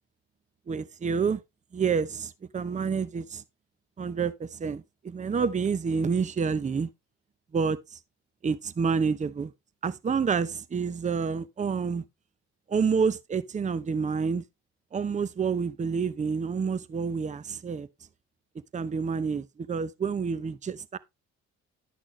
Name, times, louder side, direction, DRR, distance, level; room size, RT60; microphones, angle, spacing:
voice 1, 0.7-1.4 1.7-3.4 4.0-6.9 7.5-8.0 8.4-9.5 9.8-12.0 12.7-14.4 14.9-17.9 18.7-21.0, right 5 dB, 25° right, 0.6 m, -28 dB
11.0 x 6.0 x 3.1 m
cardioid pair, 90°, 30 cm